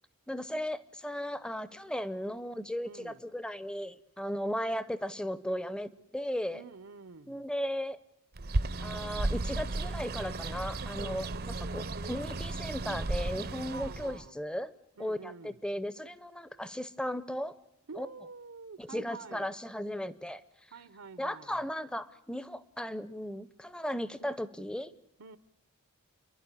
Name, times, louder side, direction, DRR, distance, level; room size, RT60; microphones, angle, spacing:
voice 1, 0.3-6.6 7.3-8.0 8.8-14.7 15.0-17.5 18.0-18.1 18.8-20.4 21.2-24.9, equal, 5° left, 0.7 m, -36 dB
voice 2, 2.8-3.2 6.5-7.4 13.7-14.3 15.0-15.6 17.9-19.5 20.7-21.6 25.2-25.4, right 4 dB, 75° right, 0.9 m, -48 dB
Bird, 8.4-14.3, right 2 dB, 45° right, 0.7 m, -34 dB
29.5 x 11.5 x 9.9 m
head